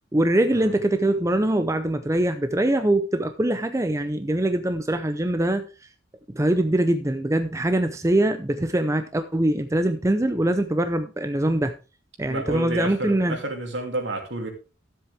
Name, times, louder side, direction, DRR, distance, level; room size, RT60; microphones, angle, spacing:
voice 1, 0.1-5.6 6.3-11.7 12.2-13.4, right 1 dB, 15° right, 8 dB, 0.6 m, -23 dB
voice 2, 12.2-14.5, right 1 dB, 70° right, 3 dB, 2.6 m, -30 dB
13.0 x 7.6 x 3.4 m, 0.32 s
head